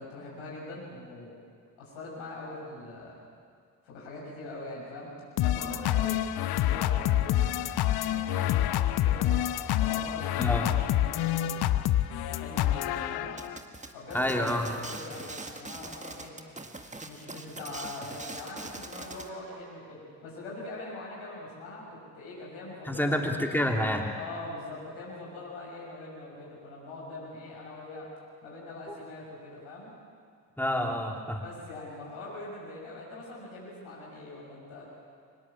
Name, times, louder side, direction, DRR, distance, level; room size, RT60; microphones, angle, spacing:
voice 1, 0.0-1.4 1.8-3.2 3.8-9.4 9.8-11.5 12.3-13.3 13.9-16.4 17.0-23.6 24.1-28.1 28.4-29.9 31.4-34.8, left 2 dB, 70° left, -5 dB, 7.1 m, -42 dB
sound 1, 5.4-13.6, left 13 dB, 50° left, 0.9 m, -27 dB
voice 2, 10.4-10.7 14.1-14.7 22.9-24.1 30.6-31.4, left 1 dB, 5° left, 2 dB, 3.1 m, -28 dB
sound 2, 13.4-19.3, right 2 dB, 15° right, 1.9 m, -42 dB
24.0 x 20.5 x 7.4 m, 2.2 s
figure-of-eight pair, 40°, 49 cm